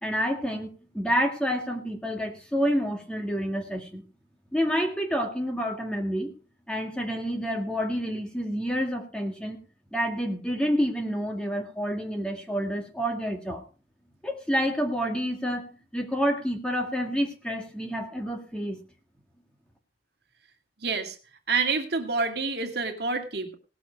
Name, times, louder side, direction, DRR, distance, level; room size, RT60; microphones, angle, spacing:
voice 1, 0.0-4.0 4.5-6.3 6.7-9.6 9.9-13.6 14.2-18.8, equal, 5° left, 3 dB, 1.9 m, -28 dB
voice 2, 20.8-21.2 21.5-23.5, right 4 dB, 55° right, 5 dB, 2.1 m, -28 dB
18.0 x 7.7 x 5.1 m, 0.35 s
head